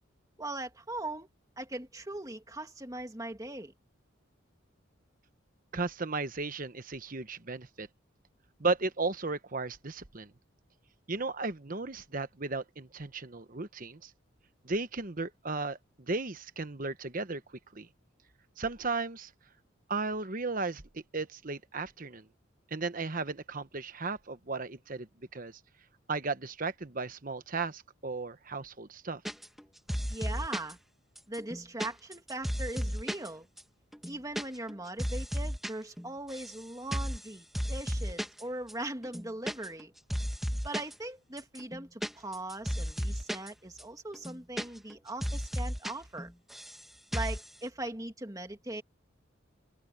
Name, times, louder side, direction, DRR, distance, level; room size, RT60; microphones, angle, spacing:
voice 1, 0.4-1.3 1.6-3.7 30.1-30.8 31.3-33.5 34.1-39.9 40.6-46.3 47.1-48.8, right 2 dB, 20° right, 2.4 m, -40 dB
voice 2, 5.7-7.9 8.6-10.3 11.1-14.1 14.6-17.4 17.7-17.9 18.6-19.3 19.9-22.3 22.7-25.6 26.1-29.2, right 3 dB, 45° right, 1.1 m, -35 dB
sound 1, 29.2-29.6 29.9-30.7 31.2-33.3 33.6-33.7 33.9-34.4 34.7-35.7 36.0-36.6 36.9-37.2 37.5-38.4 38.7-38.8 39.0-39.8 40.1-40.9 41.4-43.5 43.8-43.9 44.1-44.9 45.2-45.9 46.2-46.8 47.1-47.4, equal, ahead, 1.7 m, -34 dB
open air
head